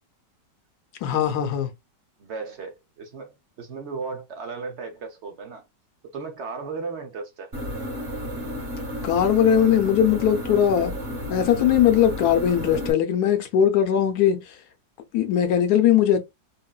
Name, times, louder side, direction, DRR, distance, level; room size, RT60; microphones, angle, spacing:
voice 1, 1.0-1.7 9.0-10.9 11.3-14.4 15.1-16.2, left 9 dB, 70° left, 1.0 m, -20 dB
voice 2, 2.2-5.6 6.1-7.5, right 4 dB, 60° right, 0.7 m, -35 dB
sound 1, 7.5-12.9, equal, 45° right, 1.8 m, -32 dB
3.7 x 2.1 x 2.3 m
omnidirectional pair, 1.9 m